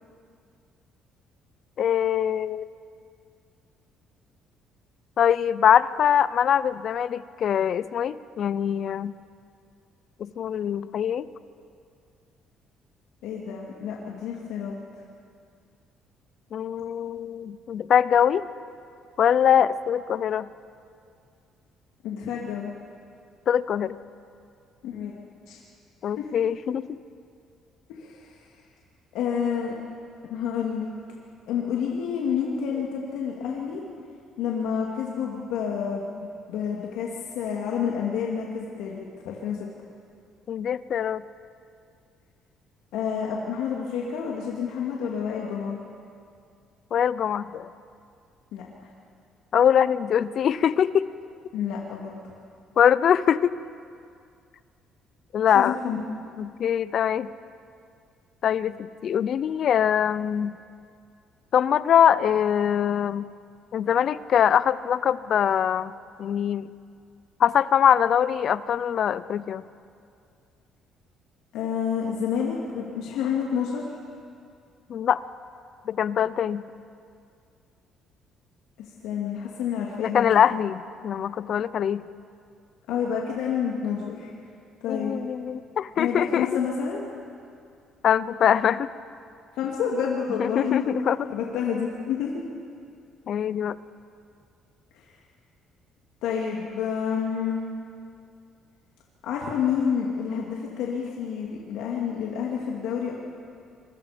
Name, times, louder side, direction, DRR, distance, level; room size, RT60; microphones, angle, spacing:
voice 1, 1.8-2.7 5.2-9.1 10.2-11.3 16.5-18.5 19.2-20.5 23.5-24.0 26.0-27.0 40.5-41.2 46.9-47.7 49.5-51.1 52.8-53.6 55.3-55.8 56.4-57.3 58.4-60.6 61.5-63.3 63.7-65.9 66.2-66.7 67.4-69.6 74.9-75.2 75.9-76.6 80.0-82.0 84.9-86.5 88.0-88.9 90.4-91.2 93.3-93.8, left 9 dB, 55° left, 16 dB, 0.7 m, -23 dB
voice 2, 13.2-14.7 22.0-22.7 24.8-25.1 25.5-25.6 26.2-26.3 27.9-28.3 29.1-29.7 30.3-30.9 31.5-33.8 34.4-39.7 42.9-45.8 48.5-48.6 51.5-52.2 55.5-56.0 71.5-73.8 79.0-80.4 82.9-84.3 84.8-85.2 86.0-87.0 89.5-90.9 91.3-92.4 96.2-97.6 99.2-103.1, left 7 dB, 85° left, -2 dB, 2.6 m, -29 dB
27.0 x 23.0 x 5.3 m, 2.3 s
cardioid pair, 110°, 0 cm